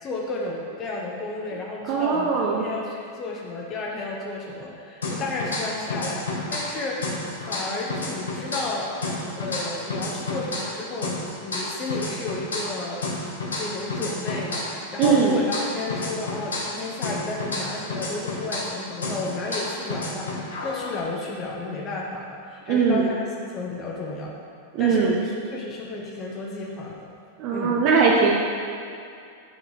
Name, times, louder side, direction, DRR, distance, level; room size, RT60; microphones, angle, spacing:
voice 1, 0.0-6.2 6.5-8.9 9.4-13.0 13.6-14.7 14.9-23.2 23.5-24.3 24.8-27.1 27.5-27.8, left 3 dB, 30° left, -3 dB, 0.9 m, -32 dB
voice 2, 1.9-2.6 15.0-15.4 22.7-23.1 24.7-25.2 27.4-28.3, right 5 dB, 45° right, -2 dB, 0.8 m, -20 dB
sound 1, 5.0-6.8 7.0-10.8 11.0-14.8 15.0-18.8 19.0-21.0, left 2 dB, 75° left, 1.2 m, -30 dB
8.7 x 3.9 x 4.8 m, 2.4 s
figure-of-eight pair, 90°, 0 cm